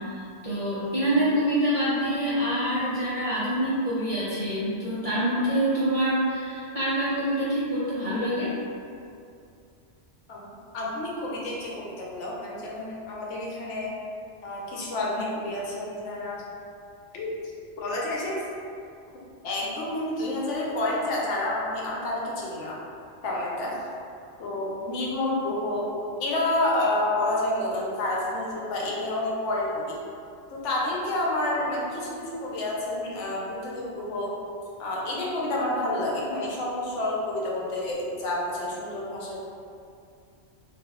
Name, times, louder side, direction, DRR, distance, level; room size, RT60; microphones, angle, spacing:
voice 1, 0.1-8.6, right 1 dB, 40° right, -11 dB, 0.5 m, -26 dB
voice 2, 10.7-14.0 14.4-16.4 17.1-17.5 17.8-18.5 19.4-22.8 23.2-23.8 24.4-25.9 26.2-30.0 30.5-34.4 34.8-39.4, left 1 dB, 85° left, -4 dB, 1.0 m, -29 dB
2.6 x 2.1 x 3.5 m, 2.5 s
omnidirectional pair, 1.2 m